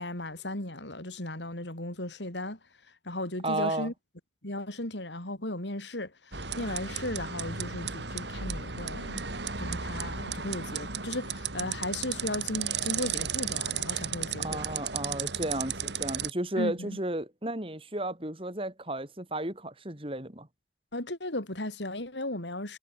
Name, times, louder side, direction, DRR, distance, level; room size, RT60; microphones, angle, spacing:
voice 1, 0.0-2.6 3.0-3.9 4.4-9.3 9.6-14.6 16.6-17.0 20.9-22.8, left 1 dB, 90° left, 6.4 m, -36 dB
voice 2, 3.4-3.9 14.4-20.5, right 1 dB, 30° right, 4.0 m, -33 dB
sound 1, 6.3-16.3, right 7 dB, 80° right, 5.6 m, -34 dB
head